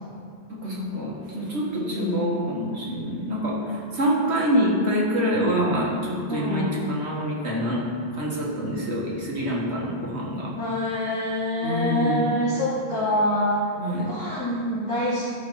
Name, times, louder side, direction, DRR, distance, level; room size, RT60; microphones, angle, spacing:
voice 1, 0.5-10.5 11.6-12.3 13.8-14.2, equal, 75° right, -4 dB, 1.9 m, -26 dB
voice 2, 1.8-2.2 6.3-6.8 10.6-13.6 14.1-15.2, left 1 dB, 5° left, -13 dB, 2.2 m, -25 dB
13.0 x 5.4 x 4.0 m, 2.3 s
omnidirectional pair, 1.1 m